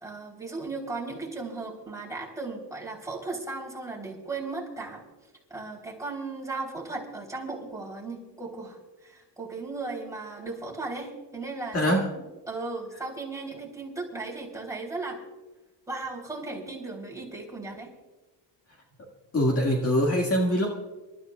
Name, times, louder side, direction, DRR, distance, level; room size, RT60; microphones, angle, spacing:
voice 1, 0.0-5.0 5.5-15.2 15.9-17.9, right 3 dB, 10° right, -2 dB, 3.4 m, -36 dB
voice 2, 19.3-20.7, equal, 35° left, 0 dB, 1.9 m, -23 dB
27.5 x 13.0 x 2.3 m, 1.1 s
cardioid pair, 130°, 42 cm